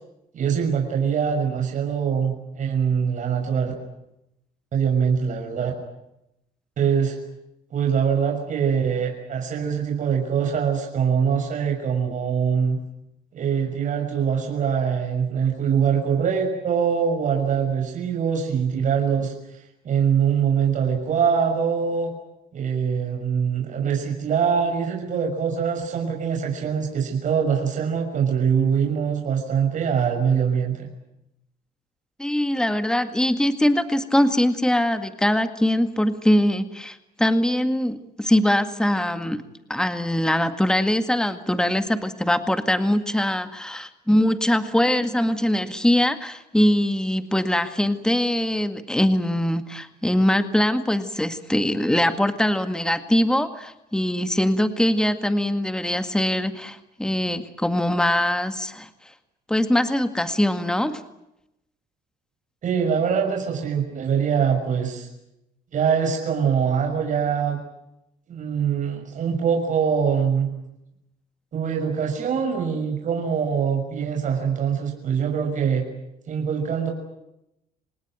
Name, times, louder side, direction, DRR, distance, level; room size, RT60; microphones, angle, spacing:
voice 1, 0.3-3.7 4.7-5.7 6.8-7.1 7.7-12.8 13.3-19.3 19.8-22.1 22.5-30.9 62.6-65.1 65.7-67.6 68.3-70.5 71.5-75.8 76.3-76.9, right 7 dB, 50° right, 1 dB, 6.3 m, -23 dB
voice 2, 32.2-39.4 39.7-58.9 59.5-61.0, left 1 dB, 5° left, 9 dB, 1.9 m, -22 dB
27.0 x 19.5 x 9.2 m, 0.86 s
cardioid pair, 110°, 17 cm